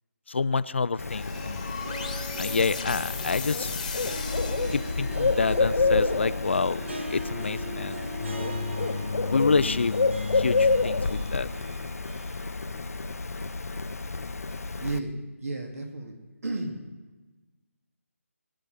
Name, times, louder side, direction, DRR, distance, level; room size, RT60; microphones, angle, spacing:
voice 1, 0.3-1.7 2.4-3.8 4.7-8.0 9.3-9.9 10.3-11.5, left 4 dB, 50° left, 16 dB, 0.4 m, -28 dB
Bird, 1.0-15.0, left 3 dB, 90° left, 0.7 m, -29 dB
sound 1, 1.1-5.4, left 5 dB, 30° left, 1.2 m, -37 dB
Harp, 1.1-13.2 13.6-13.7 14.5-14.6, right 1 dB, 50° right, 1.7 m, -41 dB
voice 2, 14.8-15.1 15.4-16.1 16.4-16.8, right 2 dB, 75° right, 2 dB, 2.6 m, -32 dB
21.0 x 10.0 x 3.5 m, 1.2 s
hypercardioid pair, 175°, 8 cm